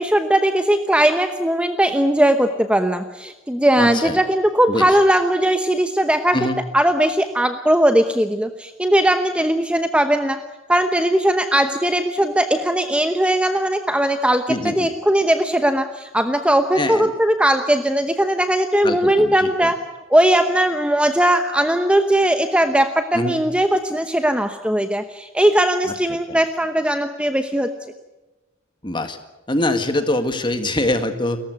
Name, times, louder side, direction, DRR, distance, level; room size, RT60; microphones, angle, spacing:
voice 1, 0.0-6.4 6.7-10.4 10.7-19.8 20.1-27.7, right 1 dB, 5° right, 7 dB, 0.9 m, -19 dB
voice 2, 3.8-4.2 4.7-5.0 6.3-6.6 14.5-14.9 16.7-17.1 18.8-19.7 23.1-23.4 26.3-26.4 28.8-29.2 29.5-31.4, left 1 dB, 25° left, 8 dB, 1.8 m, -23 dB
29.5 x 15.0 x 9.3 m, 1.1 s
head